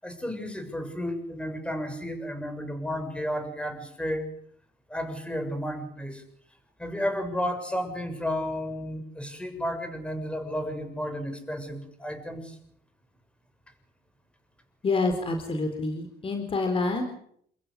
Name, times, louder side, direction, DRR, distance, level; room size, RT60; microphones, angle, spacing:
voice 1, 0.0-4.3 4.9-6.2 6.8-12.6, equal, 5° left, 7 dB, 7.2 m, -32 dB
voice 2, 14.8-17.0, left 3 dB, 35° left, 5 dB, 4.4 m, -27 dB
29.5 x 15.0 x 9.9 m, 0.67 s
cardioid pair, 110°, 17 cm